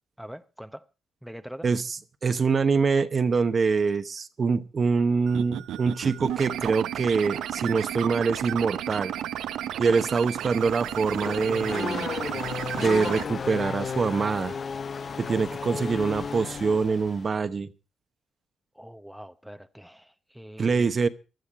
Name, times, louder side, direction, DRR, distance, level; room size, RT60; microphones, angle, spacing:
voice 1, 0.2-0.9 1.2-1.7 18.7-20.9, equal, ahead, 0.8 m, -43 dB
voice 2, 1.6-9.1 9.8-12.1 12.7-14.6 15.2-17.7 20.6-21.1, right 5 dB, 40° right, 0.9 m, -25 dB
sound 1, 5.3-13.2, right 11 dB, 80° right, 0.6 m, -33 dB
Race car auto racing / Accelerating revving vroom, 10.6-17.3, left 6 dB, 45° left, 0.6 m, -34 dB
15.5 x 11.5 x 4.9 m
cardioid pair, 90°, 0 cm